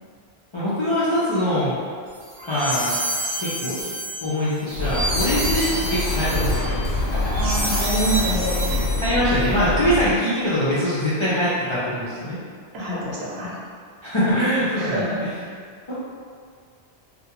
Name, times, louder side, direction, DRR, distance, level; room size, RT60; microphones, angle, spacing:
voice 1, 0.5-1.8 2.4-3.0 3.4-3.9 4.2-6.8 9.0-12.4 14.0-15.3 15.9-16.0, equal, 50° left, -11 dB, 0.3 m, -23 dB
sound 1, 2.2-9.5, right 1 dB, 60° right, 0.7 m, -29 dB
Bird, 4.7-10.2, left 2 dB, 90° left, 0.8 m, -25 dB
voice 2, 7.3-8.8 10.1-10.2 12.7-13.5 14.8-15.2, right 1 dB, 80° right, -6 dB, 0.9 m, -27 dB
2.3 x 2.2 x 2.9 m, 2.1 s
omnidirectional pair, 1.1 m